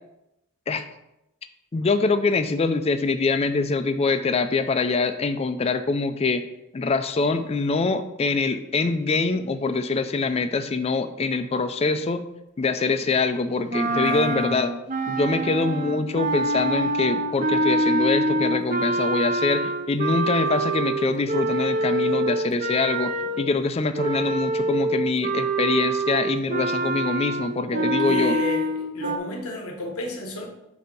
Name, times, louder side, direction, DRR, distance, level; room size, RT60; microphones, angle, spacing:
voice 1, 1.7-6.4 6.7-12.2 12.6-14.7 15.1-23.1 23.4-28.4, left 4 dB, 30° left, 9 dB, 0.3 m, -24 dB
Clarinet - Asharp major, 13.7-23.5 23.9-29.2, right 2 dB, 35° right, 0.5 m, -25 dB
voice 2, 13.9-14.4 23.2-23.3 27.7-30.5, left 1 dB, 85° left, 1 dB, 1.1 m, -33 dB
7.6 x 2.8 x 5.3 m, 0.87 s
head